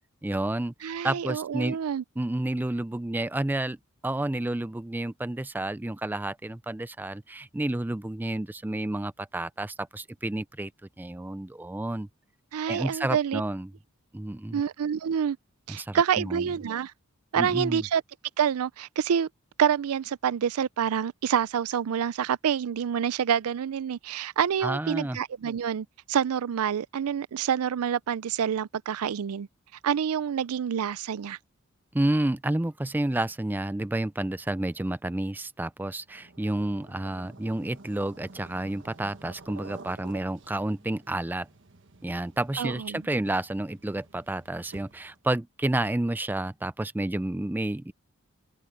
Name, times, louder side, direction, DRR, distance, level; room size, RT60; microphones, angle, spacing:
voice 1, 0.2-1.8 2.2-3.8 4.0-10.7 11.0-12.1 12.7-13.7 14.1-14.6 15.7-16.4 17.4-17.8 24.6-25.2 31.9-41.5 42.0-47.9, right 1 dB, 10° right, 0.3 m, -30 dB
voice 2, 0.8-2.0 12.5-13.4 14.5-15.4 15.7-16.9 17.3-18.0 18.4-19.3 19.6-29.5 29.8-31.4 42.6-43.0, right 8 dB, 90° right, 0.4 m, -27 dB
sound 1, 36.1-45.2, right 3 dB, 55° right, 1.4 m, -51 dB
open air
head